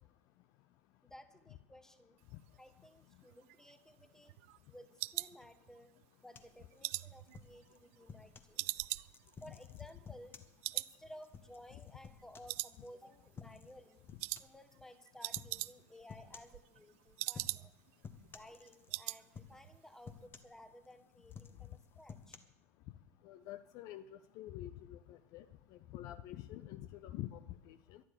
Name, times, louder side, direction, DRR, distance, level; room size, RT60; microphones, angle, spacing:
voice 1, 1.0-2.2 2.6-4.4 4.7-5.9 6.2-8.9 9.4-10.4 10.7-14.0 14.4-17.7 18.3-22.4, equal, 5° left, 10 dB, 1.4 m, -57 dB
sound 1, 3.3-6.0 6.4-8.2 8.6-10.4 10.6-11.0 11.2-11.3 11.8-12.2 12.5-13.3 13.5-13.8 14.2-14.5 14.8-14.9 15.1-16.0 16.3-17.9 18.2-18.3 18.6-19.2 19.5-19.8 20.1-20.2, right 22 dB, 50° right, 0.4 m, -42 dB
sound 2, 6.3-8.6 9.1-12.9 13.4-13.8 14.1-14.6 15.3-15.6 16.1-16.6 17.3-17.7 18.0-19.0 19.3-19.7 20.0-20.9 21.3-22.4, left 6 dB, 25° left, 1.3 m, -54 dB
voice 2, 23.2-24.0 24.4-25.4 25.9-27.4 27.7-28.0, left 14 dB, 45° left, 13 dB, 0.6 m, -47 dB
12.5 x 12.0 x 6.9 m, 0.95 s
figure-of-eight pair, 80°, 9 cm